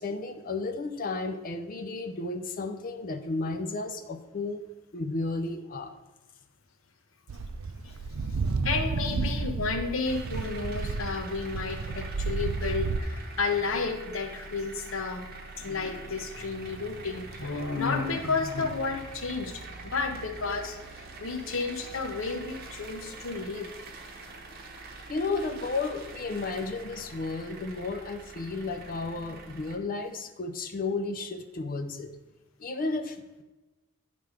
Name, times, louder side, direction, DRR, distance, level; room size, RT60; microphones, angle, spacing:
voice 1, 0.0-4.6 4.9-5.9 25.1-32.1 32.6-33.4, left 3 dB, 40° left, 7 dB, 0.4 m, -33 dB
sound 1, 7.3-13.0, right 4 dB, 80° right, 0.5 m, -31 dB
voice 2, 8.6-15.3 15.6-23.7, left 4 dB, 70° left, 5 dB, 0.9 m, -32 dB
sound 2, 10.0-29.8, right 3 dB, 45° right, 0.8 m, -44 dB
9.5 x 3.4 x 4.9 m, 1.1 s
head